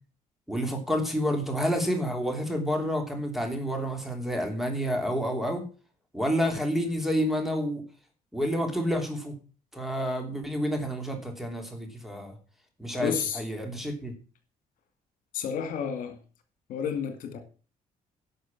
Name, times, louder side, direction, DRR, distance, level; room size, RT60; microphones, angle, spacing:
voice 1, 0.5-5.6 6.1-7.8 8.3-9.3 9.7-12.4 12.8-14.1, equal, ahead, 4 dB, 3.0 m, -29 dB
voice 2, 13.0-13.4 15.3-16.2 16.7-17.4, left 7 dB, 75° left, 8 dB, 2.3 m, -30 dB
11.5 x 6.5 x 7.4 m, 0.36 s
cardioid pair, 130°, 14 cm